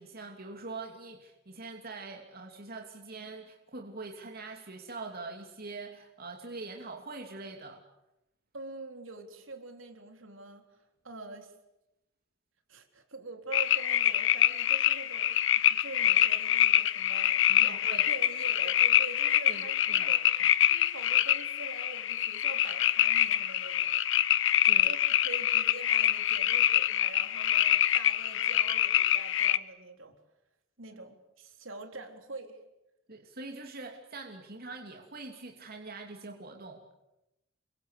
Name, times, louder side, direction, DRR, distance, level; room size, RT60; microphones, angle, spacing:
voice 1, 0.0-7.8 17.5-18.0 19.5-20.1 24.7-24.9 30.9-31.0 33.1-36.8, right 3 dB, 50° right, 2 dB, 3.0 m, -43 dB
voice 2, 8.5-10.6 11.0-11.5 12.7-17.8 18.1-20.2 20.7-23.9 24.8-30.2 30.8-32.6, right 3 dB, 70° right, 5 dB, 3.8 m, -45 dB
sound 1, 13.5-29.6, left 11 dB, 65° left, 1.0 m, -25 dB
29.0 x 24.5 x 8.4 m, 0.91 s
head